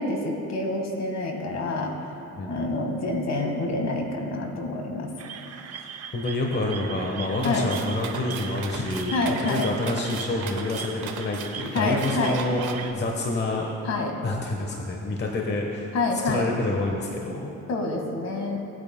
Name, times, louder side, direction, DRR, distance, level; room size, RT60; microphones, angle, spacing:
voice 1, 0.0-1.9 2.5-5.1 7.4-7.7 9.1-9.7 11.7-12.4 13.8-14.1 15.9-16.5 17.7-18.6, left 2 dB, 60° left, 2 dB, 1.7 m, -27 dB
sound 1, 5.2-12.9, right 7 dB, 55° right, 0.7 m, -39 dB
voice 2, 6.1-9.2 9.5-13.7 14.2-15.9 16.2-17.5, left 2 dB, 35° left, 0 dB, 1.1 m, -28 dB
sound 2, 7.4-12.7, right 6 dB, 80° right, 1.1 m, -38 dB
18.0 x 8.9 x 2.2 m, 2.9 s
cardioid pair, 90°, 30 cm